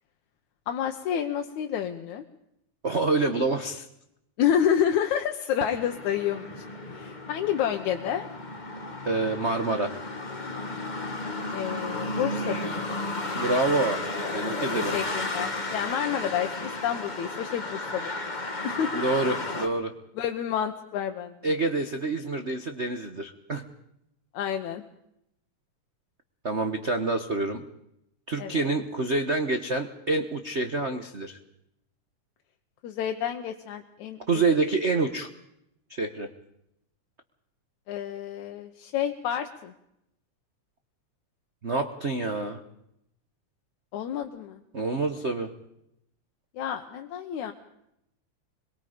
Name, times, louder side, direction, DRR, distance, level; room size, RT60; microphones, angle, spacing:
voice 1, 0.7-2.2 4.4-6.6 6.9-8.3 11.5-13.0 14.8-18.1 18.6-19.0 20.2-21.3 24.3-24.8 28.4-28.7 32.8-34.4 37.9-39.7 43.9-44.6 46.6-47.5, left 9 dB, 75° left, 5 dB, 2.4 m, -29 dB
voice 2, 2.8-3.9 9.0-10.0 13.3-14.0 14.3-15.0 18.9-19.9 21.4-23.7 26.4-27.6 28.3-31.4 34.3-35.3 35.9-36.3 41.6-42.6 44.7-45.5, right 3 dB, 80° right, 7 dB, 0.6 m, -27 dB
sound 1, 5.7-19.7, left 2 dB, 20° left, 1.2 m, -33 dB
25.0 x 22.5 x 5.1 m, 0.78 s
omnidirectional pair, 3.4 m